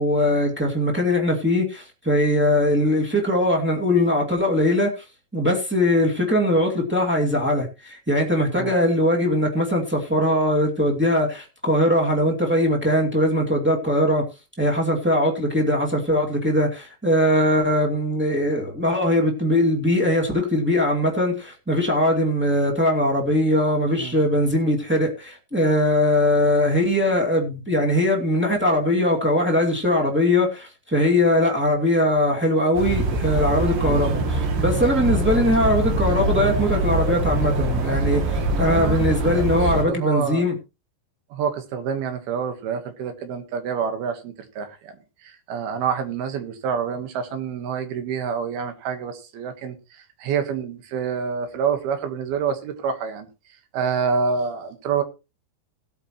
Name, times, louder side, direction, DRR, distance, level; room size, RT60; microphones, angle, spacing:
voice 1, 0.0-4.9 5.3-14.2 14.6-40.5, left 1 dB, 10° right, 0.7 m, -21 dB
sound 1, 32.7-39.8, right 2 dB, 85° right, 4.9 m, -23 dB
voice 2, 38.6-40.4 41.3-45.0 45.2-53.3 53.7-55.0, right 6 dB, 70° right, 3.2 m, -27 dB
18.5 x 8.4 x 3.1 m
omnidirectional pair, 5.0 m